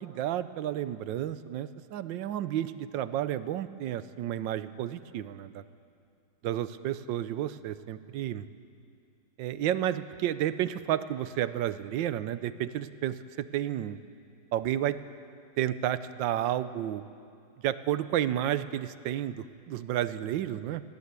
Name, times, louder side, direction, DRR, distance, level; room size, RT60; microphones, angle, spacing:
voice 1, 0.0-5.6 6.4-8.5 9.4-14.0 14.5-15.0 15.6-17.0 17.6-20.8, right 11 dB, 90° right, 14 dB, 1.4 m, -31 dB
21.5 x 16.0 x 8.2 m, 2.4 s
omnidirectional pair, 2.0 m